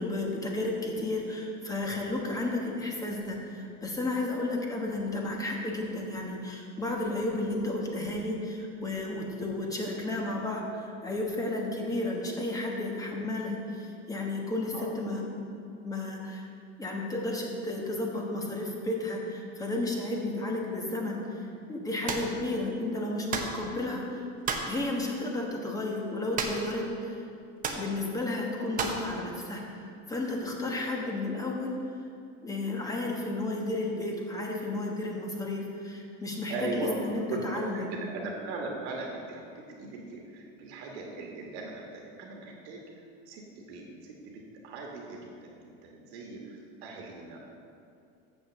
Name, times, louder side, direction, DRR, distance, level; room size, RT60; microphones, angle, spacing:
voice 1, 0.0-15.4 15.8-16.5 16.8-24.2 24.7-27.2 27.8-29.8 30.1-31.8 32.4-37.9, left 2 dB, 10° left, -1 dB, 1.2 m, -32 dB
sound 1, 22.1-22.3 23.3-23.6 24.4-24.7 26.4-26.8 27.0-27.1 27.6-27.9 28.8-29.1, right 5 dB, 25° right, 0.8 m, -32 dB
voice 2, 36.5-47.4, right 2 dB, 85° right, -1 dB, 1.4 m, -39 dB
7.0 x 6.1 x 7.2 m, 2.5 s
cardioid pair, 145°, 31 cm